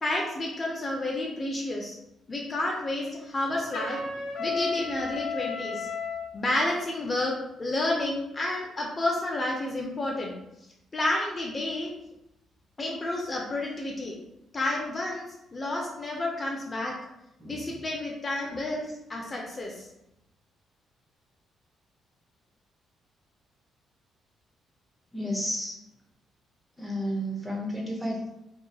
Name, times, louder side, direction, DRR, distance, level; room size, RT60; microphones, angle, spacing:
voice 1, 0.0-2.0 2.3-4.0 4.4-5.9 6.3-10.3 10.9-11.9 12.8-14.2 14.5-15.3 15.5-17.0 17.5-19.9, left 2 dB, 30° left, -1 dB, 0.4 m, -30 dB
Trumpet, 3.7-6.3, left 4 dB, 75° left, 0.6 m, -33 dB
voice 2, 17.4-17.8 25.1-25.8 26.8-28.3, equal, 5° right, -1 dB, 0.7 m, -32 dB
2.7 x 2.2 x 2.3 m, 0.87 s
cardioid pair, 90°, 0 cm